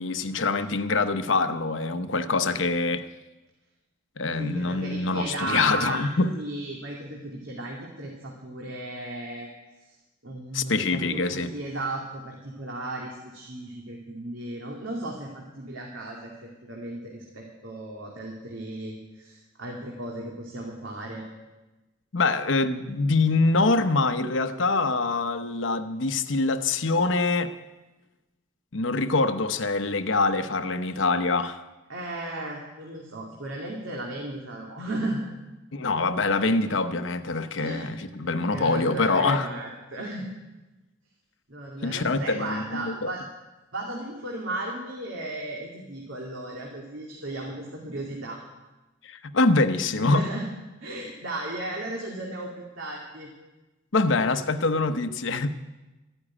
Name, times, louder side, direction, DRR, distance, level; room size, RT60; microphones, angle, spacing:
voice 1, 0.0-3.1 4.2-6.3 10.5-11.5 22.1-27.5 28.7-31.6 35.7-39.5 41.8-43.1 49.0-50.3 53.9-55.5, left 3 dB, 75° left, 0.9 m, -24 dB
voice 2, 4.4-6.0 6.3-9.5 10.2-21.2 31.9-35.2 37.6-37.9 38.2-40.3 41.5-43.2 43.7-48.4 49.9-50.5 50.8-53.3, right 1 dB, 85° right, 2.4 m, -35 dB
13.5 x 10.0 x 9.9 m
head